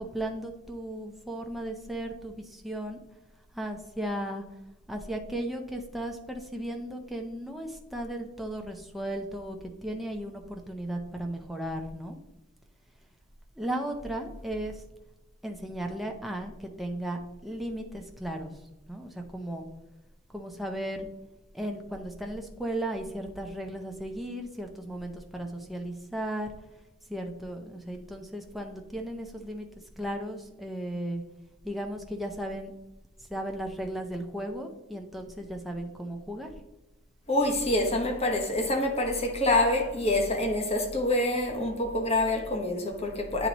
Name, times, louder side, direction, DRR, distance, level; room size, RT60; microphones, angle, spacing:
voice 1, 0.0-2.3 2.6-3.0 3.6-4.4 4.9-9.6 9.8-12.2 13.6-14.7 15.4-18.5 18.9-19.6 20.3-21.1 21.5-26.5 27.1-29.6 30.0-31.2 31.6-32.7 33.3-36.5, right 1 dB, ahead, 0.6 m, -35 dB
voice 2, 37.3-43.5, left 1 dB, 30° left, 1.1 m, -26 dB
9.2 x 4.0 x 3.0 m
head